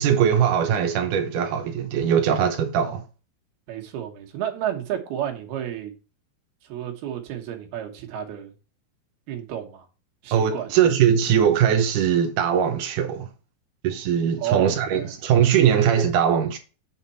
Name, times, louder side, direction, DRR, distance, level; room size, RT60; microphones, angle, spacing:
voice 1, 0.0-3.0 10.3-13.3 13.8-16.6, right 8 dB, 85° right, 1.8 m, -21 dB
voice 2, 3.7-5.9 6.7-8.5 9.3-9.9 10.2-10.7 14.4-15.1, right 10 dB, 70° right, 3.0 m, -31 dB
7.3 x 6.6 x 4.1 m
omnidirectional pair, 5.0 m